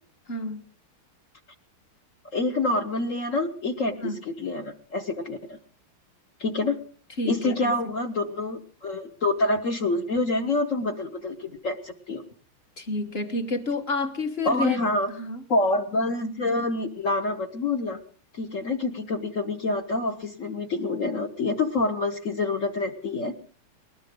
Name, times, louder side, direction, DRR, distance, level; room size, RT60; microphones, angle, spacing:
voice 1, 0.3-0.6 4.0-4.2 7.2-7.8 12.8-14.8 15.1-15.4, left 2 dB, 35° left, 1.3 m, -29 dB
voice 2, 2.3-5.6 6.4-6.8 7.2-12.2 14.4-15.1 15.5-18.0 18.3-23.3, left 2 dB, 50° left, 1.0 m, -27 dB
19.5 x 19.5 x 3.7 m
omnidirectional pair, 2.4 m